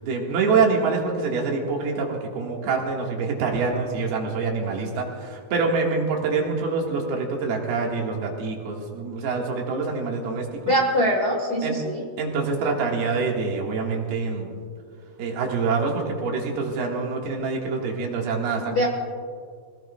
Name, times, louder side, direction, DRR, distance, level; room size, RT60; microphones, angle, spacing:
voice 1, 0.0-10.7 11.6-11.7 12.2-14.6 15.2-18.9, right 4 dB, 75° right, -1 dB, 3.7 m, -25 dB
voice 2, 10.7-12.0 18.7-18.9, equal, 65° left, -1 dB, 0.9 m, -22 dB
25.0 x 17.5 x 2.4 m, 2.1 s
omnidirectional pair, 4.5 m